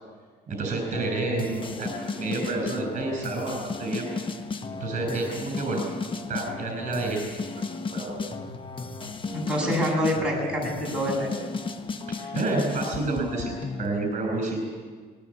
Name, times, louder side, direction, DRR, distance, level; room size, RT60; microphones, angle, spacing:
voice 1, 0.5-4.1 4.8-5.8 6.3-7.6 7.9-8.3 12.1-14.7, right 2 dB, 45° right, 2 dB, 6.2 m, -29 dB
sound 1, 0.9-13.9, left 4 dB, 30° left, 1.2 m, -34 dB
voice 2, 9.3-11.3, equal, 5° right, -3 dB, 7.8 m, -26 dB
20.5 x 18.5 x 8.5 m, 1.5 s
cardioid pair, 110°, 17 cm